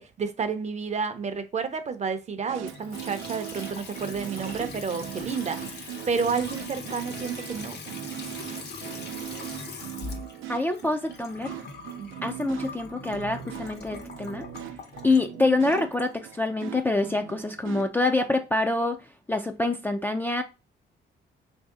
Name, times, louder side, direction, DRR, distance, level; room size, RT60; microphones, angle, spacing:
voice 1, 0.0-7.8 12.0-12.3, right 5 dB, 35° right, 0.6 m, -31 dB
sound 1, 2.5-17.9, right 13 dB, 85° right, 0.4 m, -40 dB
Water tap faucet / Sink (filling or washing) / Trickle dribble, 2.6-16.7, left 4 dB, 55° left, 0.8 m, -42 dB
voice 2, 10.5-11.6 12.2-14.5 15.0-20.4, left 2 dB, 10° left, 0.3 m, -26 dB
3.1 x 2.7 x 3.6 m
cardioid pair, 90°, 20 cm